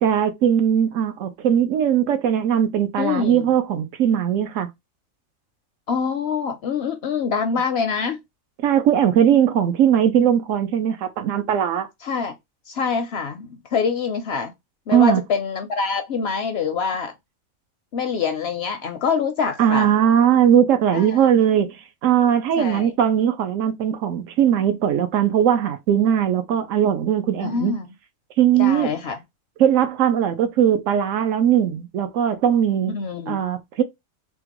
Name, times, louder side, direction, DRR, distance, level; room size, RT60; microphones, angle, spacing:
voice 1, 0.0-4.7 8.6-11.9 14.9-15.2 19.6-21.8 22.0-27.8 28.4-28.9 29.6-32.9 33.3-33.8, right 9 dB, 75° right, 1.0 m, -19 dB
voice 2, 3.0-3.5 5.9-8.2 12.0-12.3 12.7-14.5 14.9-17.1 17.9-19.9 20.9-21.3 22.6-22.9 27.4-27.9 28.5-29.2 32.9-33.4, left 5 dB, 65° left, 0.7 m, -25 dB
3.6 x 2.2 x 2.9 m
omnidirectional pair, 1.4 m